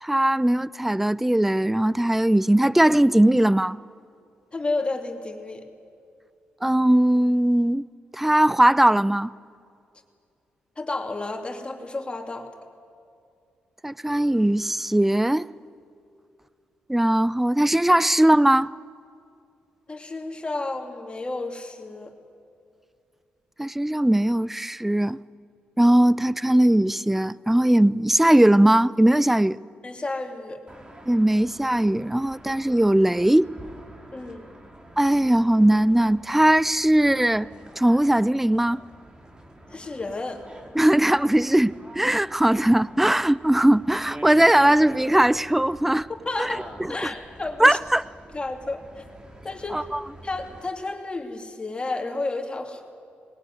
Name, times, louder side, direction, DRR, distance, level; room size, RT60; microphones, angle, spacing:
voice 1, 0.0-3.8 6.6-7.8 8.1-9.3 13.8-15.5 16.9-18.7 23.6-25.2 25.8-29.6 31.1-33.5 35.0-37.5 37.8-38.8 40.7-46.1 46.4-46.9 47.6-48.0 49.7-50.0, right 1 dB, 5° right, 0.5 m, -19 dB
voice 2, 4.5-5.7 10.8-12.5 19.9-22.1 29.8-30.6 34.1-34.5 39.7-40.4 46.2-46.6 46.9-47.8 48.3-49.0 49.4-49.9 50.2-52.8, left 2 dB, 25° left, 2.8 m, -31 dB
sound 1, 30.7-50.7, right 1 dB, 20° right, 2.7 m, -45 dB
20.5 x 18.5 x 9.4 m
cardioid pair, 65°, 4 cm